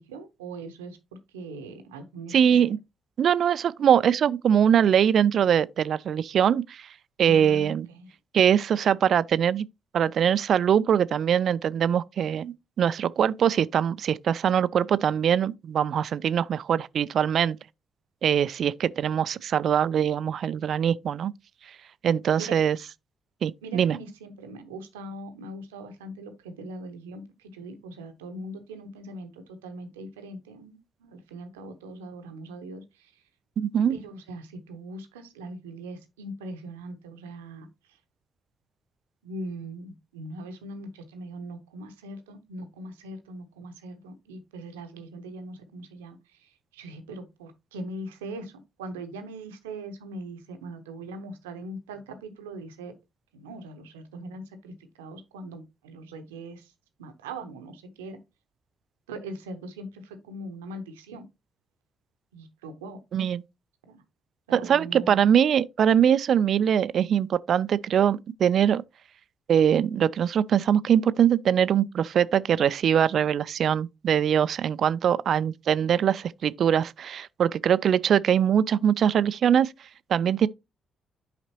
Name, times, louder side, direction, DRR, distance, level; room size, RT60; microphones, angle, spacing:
voice 1, 0.0-2.3 2.6-2.7 7.2-8.1 22.4-22.6 23.6-33.2 33.9-38.0 39.2-52.9 53.3-56.7 57.0-58.2 59.1-61.2 62.3-63.0 63.8-64.0 64.5-65.2, right 2 dB, 80° right, 0.9 m, -41 dB
voice 2, 2.3-2.8 3.2-6.9 7.2-7.9 8.3-9.7 9.9-17.6 18.2-21.3 22.0-22.8 23.4-24.0 33.6-34.0 63.1-63.4 64.5-68.8 69.5-79.7 80.1-80.5, right 8 dB, 60° right, 0.4 m, -22 dB
8.1 x 4.9 x 2.8 m
figure-of-eight pair, 40°, 0 cm